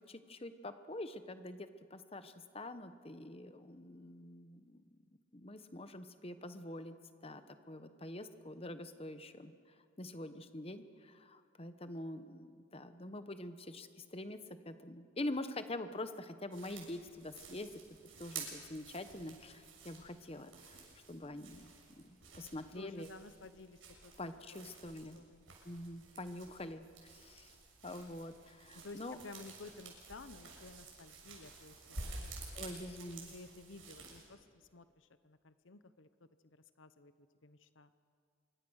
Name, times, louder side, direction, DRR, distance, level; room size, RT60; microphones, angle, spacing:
voice 1, 0.0-4.8 5.3-7.0 7.2-9.5 10.0-14.4 14.6-17.7 18.2-20.8 21.1-21.7 22.0-23.1 24.2-25.2 25.6-27.5 27.8-29.2 32.5-33.3, left 1 dB, 30° left, 10 dB, 1.1 m, -45 dB
sound 1, 16.5-34.2, right 4 dB, 85° right, 6.6 m, -51 dB
voice 2, 22.7-24.1 24.5-24.7 25.1-25.4 27.9-28.1 28.7-32.9 33.3-36.1 36.8-37.1 37.4-37.9, left 3 dB, 75° left, 12 dB, 0.9 m, -54 dB
25.5 x 23.5 x 6.5 m, 2.1 s
head